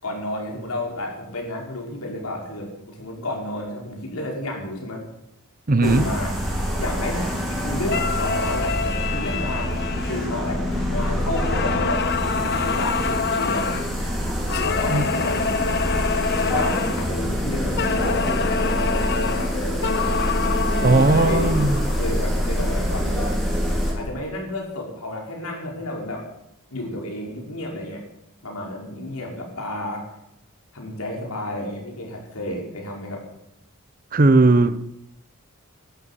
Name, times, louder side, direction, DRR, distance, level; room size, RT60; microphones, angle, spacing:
voice 1, 0.0-5.0 5.8-6.4 6.8-9.8 10.1-12.0 12.3-13.7 14.6-15.8 16.4-18.8 19.1-19.9 20.8-21.5 21.9-23.3 23.9-26.3 26.7-28.0 28.4-30.0 30.7-33.2, left 1 dB, 75° left, 5.3 m, -31 dB
voice 2, 5.7-6.0 14.9-15.1 20.8-21.8 34.1-34.9, right 2 dB, 40° right, 0.7 m, -17 dB
sound 1, 5.8-23.9, equal, ahead, 4.2 m, -25 dB
sound 2, 7.9-10.9 11.3-13.9 14.5-17.1 17.8-22.0, left 5 dB, 50° left, 1.1 m, -26 dB
14.0 x 12.5 x 8.4 m
head